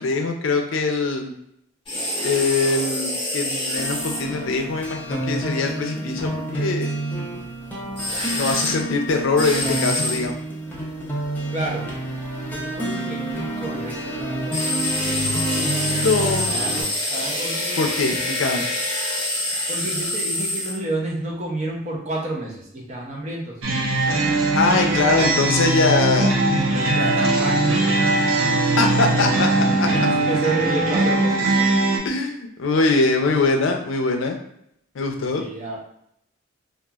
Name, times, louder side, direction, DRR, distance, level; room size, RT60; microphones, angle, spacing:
voice 1, 0.0-1.3 2.2-6.9 8.3-10.4 16.0-16.6 17.8-18.7 24.5-26.4 28.8-29.5 29.8-29.9 32.0-34.4 35.0-35.4, left 3 dB, 70° left, 3 dB, 0.4 m, -22 dB
sound 1, 1.8-4.2 8.0-8.7 9.4-10.2 14.5-20.8, left 1 dB, 25° left, 0.9 m, -26 dB
sound 2, 3.8-16.8, right 1 dB, 10° left, 0.5 m, -29 dB
voice 2, 11.5-11.9 12.5-14.6 16.5-17.7 19.7-23.6 26.5-27.8 29.4-29.5 29.9-31.7 35.2-35.8, right 2 dB, 35° right, -3 dB, 0.6 m, -30 dB
sound 3, 23.6-32.0, right 2 dB, 85° right, 0.5 m, -20 dB
2.9 x 2.4 x 2.3 m, 0.72 s
head